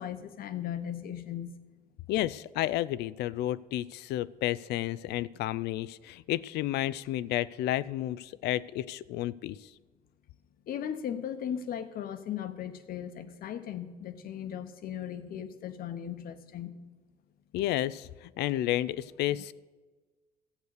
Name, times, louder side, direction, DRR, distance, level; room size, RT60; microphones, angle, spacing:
voice 1, 0.0-1.6 10.7-16.8 19.3-19.4, left 9 dB, 60° left, 10 dB, 1.1 m, -37 dB
voice 2, 2.1-9.7 17.5-19.5, left 14 dB, 80° left, 19 dB, 0.4 m, -31 dB
14.5 x 8.1 x 6.7 m, 1.3 s
cardioid pair, 110°, 17 cm